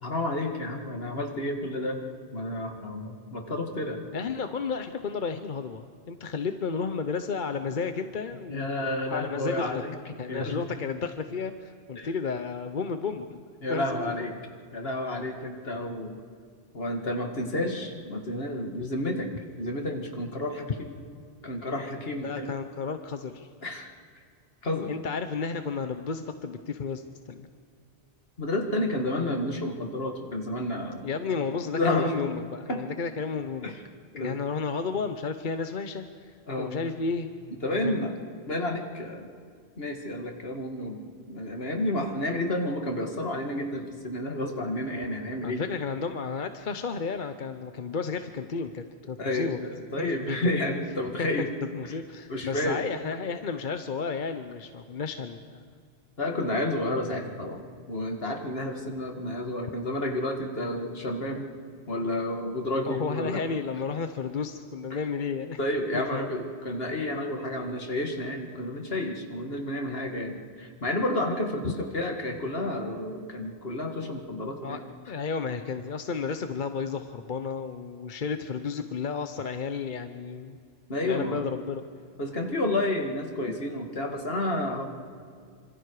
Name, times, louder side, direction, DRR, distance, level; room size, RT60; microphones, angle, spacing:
voice 1, 0.0-2.0 2.3-4.0 8.5-9.9 10.3-10.6 12.0-12.1 13.6-14.3 14.7-16.1 16.7-19.3 19.6-20.9 21.4-22.5 23.6-23.9 24.6-24.9 28.4-31.0 31.7-32.1 32.7-32.8 33.6-33.8 34.2-34.4 36.5-36.8 37.6-38.1 38.5-39.3 39.8-41.0 41.3-45.6 49.2-51.5 52.3-52.8 56.2-57.6 57.9-61.5 61.9-63.4 64.9-65.0 65.6-74.8 80.9-81.4 82.2-84.8, left 1 dB, 65° left, 3 dB, 2.5 m, -30 dB
voice 2, 4.1-8.8 9.1-9.7 10.2-13.4 13.7-14.3 22.2-23.5 24.9-27.5 31.0-33.7 34.1-37.3 37.7-38.1 45.4-49.7 50.0-50.6 51.2-51.5 51.7-55.7 62.9-65.6 65.9-66.2 71.6-71.7 74.6-74.8 75.1-80.6 81.0-81.8, left 5 dB, 50° left, 8 dB, 0.9 m, -32 dB
27.0 x 26.0 x 4.9 m, 2.2 s
omnidirectional pair, 1.1 m